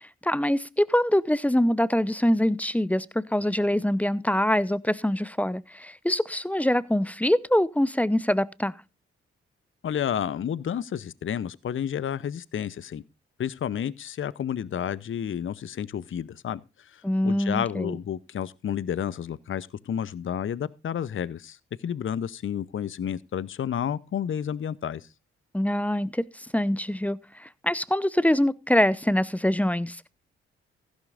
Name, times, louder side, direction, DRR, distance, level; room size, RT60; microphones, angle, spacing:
voice 1, 0.2-8.7 17.0-18.0 25.5-26.3 26.5-30.1, left 1 dB, 5° left, 0.7 m, -24 dB
voice 2, 9.8-13.0 13.4-25.1, left 9 dB, 45° left, 0.7 m, -31 dB
15.0 x 11.5 x 2.5 m
hypercardioid pair, 40°, 29 cm